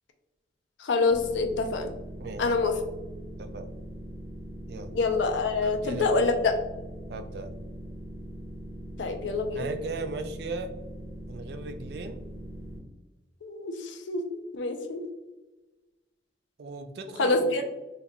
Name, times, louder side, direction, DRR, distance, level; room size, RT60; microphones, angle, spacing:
voice 1, 0.8-1.9 2.4-2.7 4.9-6.5 9.0-9.7 13.4-15.0 17.2-17.6, left 3 dB, 90° left, 5 dB, 0.5 m, -26 dB
sound 1, 1.1-12.8, equal, 15° right, 1.0 m, -41 dB
voice 2, 2.2-2.5 3.4-3.7 4.7-4.9 5.6-6.2 7.1-7.5 9.5-10.7 11.3-12.2 16.6-17.5, right 3 dB, 60° right, 8 dB, 0.4 m, -37 dB
3.8 x 2.7 x 2.2 m, 1.1 s
head